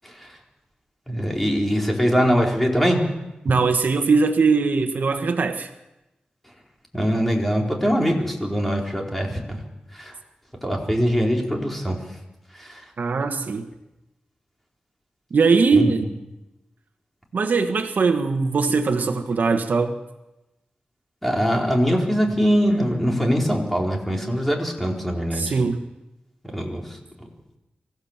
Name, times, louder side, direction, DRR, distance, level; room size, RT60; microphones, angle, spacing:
voice 1, 1.1-3.1 6.9-9.6 9.9-10.1 10.6-12.0 12.5-12.8 15.7-15.9 21.2-25.5 26.5-27.0, equal, 5° left, 4.3 m, -22 dB
voice 2, 3.4-5.7 13.0-13.7 15.3-16.1 17.3-20.0 25.3-25.8, right 4 dB, 70° right, 1.5 m, -20 dB
25.0 x 15.5 x 7.4 m
wide cardioid pair, 90°, 3 cm